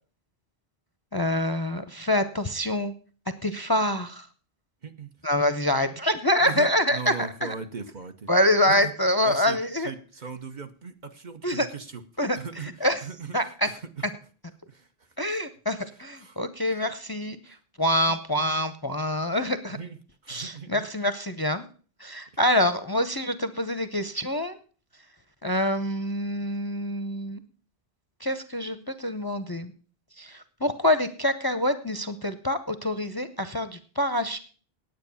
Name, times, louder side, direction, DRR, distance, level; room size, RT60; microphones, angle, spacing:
voice 1, 1.1-2.9 3.4-4.3 5.2-7.1 7.4-7.5 8.3-9.9 11.4-11.7 12.2-12.4 12.8-13.0 13.3-13.7 15.2-17.4 17.8-19.8 20.3-21.6 22.0-24.6 25.4-27.4 28.2-29.7 30.2-34.4, left 1 dB, 25° left, 11 dB, 0.7 m, -26 dB
voice 2, 6.4-8.3 8.7-8.9 9.2-12.0 12.3-14.0 14.7-15.1 16.2-16.4 17.4-17.6 18.1-18.2 19.7-20.9, right 5 dB, 50° right, 7 dB, 1.1 m, -39 dB
9.6 x 8.7 x 6.9 m, 0.40 s
omnidirectional pair, 1.0 m